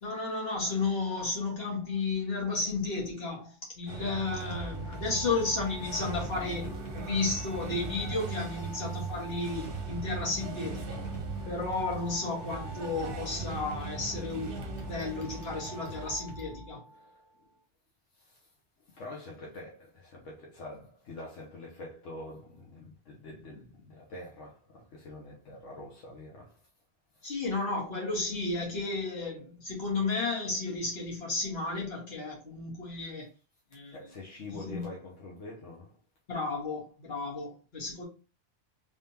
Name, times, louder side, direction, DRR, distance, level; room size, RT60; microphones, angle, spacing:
voice 1, 0.0-11.0 11.5-16.8 27.2-33.3 33.7-34.0 34.5-34.9 36.3-38.0, left 3 dB, 55° left, 1.9 m, -33 dB
sound 1, 3.9-16.1, right 7 dB, 55° right, 0.9 m, -41 dB
sound 2, 4.1-17.1, equal, 25° left, 0.9 m, -42 dB
voice 2, 16.9-17.5 18.2-18.5 18.8-26.6 27.1-27.3 33.9-36.0, left 2 dB, 85° left, 1.3 m, -46 dB
3.5 x 3.4 x 2.8 m
omnidirectional pair, 1.2 m